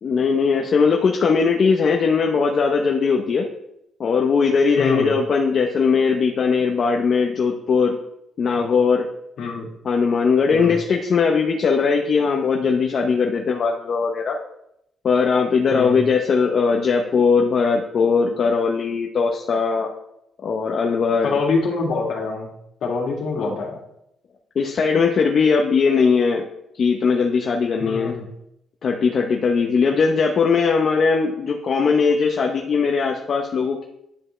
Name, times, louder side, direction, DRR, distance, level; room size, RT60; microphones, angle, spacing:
voice 1, 0.0-3.5 4.0-8.0 8.4-9.1 9.8-14.4 15.0-19.9 20.4-21.4 23.4-23.6 24.5-26.5 26.8-28.1 28.8-33.9, left 5 dB, 55° left, 1 dB, 0.8 m, -19 dB
voice 2, 4.8-5.1 9.4-9.7 10.5-10.7 15.7-16.0 21.2-22.5 22.8-23.8 27.8-28.3, left 4 dB, 70° left, -1 dB, 2.2 m, -25 dB
10.0 x 5.4 x 3.3 m, 0.80 s
cardioid pair, 90°, 0 cm